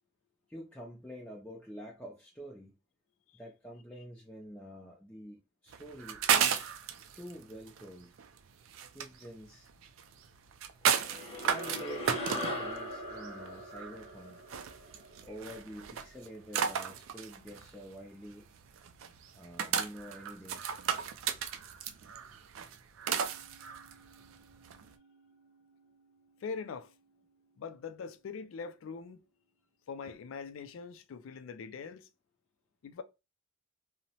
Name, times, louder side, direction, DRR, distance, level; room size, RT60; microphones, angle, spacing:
voice 1, 0.5-2.7 3.3-6.7 7.1-8.2 8.9-9.7 11.4-14.4 15.2-18.5 19.3-20.6, equal, 5° left, 0.4 m, -47 dB
sound 1, 5.7-24.9, right 8 dB, 85° right, 0.3 m, -34 dB
sound 2, 10.9-15.6, left 1 dB, 30° left, 0.8 m, -40 dB
Musical instrument, 23.1-29.5, right 4 dB, 60° right, 0.8 m, -64 dB
voice 2, 26.4-26.9 27.6-29.2 29.9-32.1 32.8-33.0, left 5 dB, 85° left, 0.3 m, -42 dB
2.7 x 2.1 x 2.7 m
head